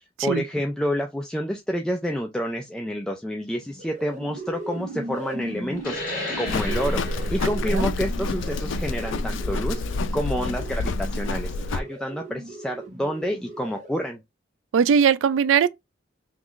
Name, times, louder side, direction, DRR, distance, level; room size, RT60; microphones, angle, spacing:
voice 1, 0.2-6.0 6.4-7.0 7.3-9.8 10.1-14.2, equal, 5° left, 0.3 m, -28 dB
sound 1, 3.6-14.2, right 2 dB, 40° right, 1.0 m, -38 dB
sound 2, 5.8-10.9, left 2 dB, 50° left, 1.2 m, -37 dB
Livestock farm animals working animals, 6.5-11.8, left 2 dB, 75° left, 0.4 m, -27 dB
voice 2, 14.7-15.7, right 7 dB, 80° right, 0.3 m, -19 dB
3.0 x 2.3 x 3.7 m
head